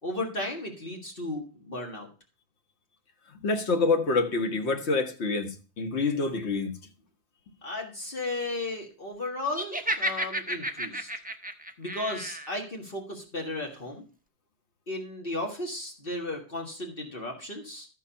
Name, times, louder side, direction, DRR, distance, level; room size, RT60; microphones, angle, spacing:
voice 1, 0.0-2.1 7.6-11.1 11.8-14.0 14.9-17.9, left 2 dB, 55° left, 1.9 m, -35 dB
voice 2, 3.4-5.5 5.8-6.7, left 3 dB, 70° left, 1.5 m, -26 dB
Laughter, 9.5-12.5, right 1 dB, 10° right, 0.5 m, -32 dB
13.0 x 4.6 x 5.6 m
omnidirectional pair, 1.2 m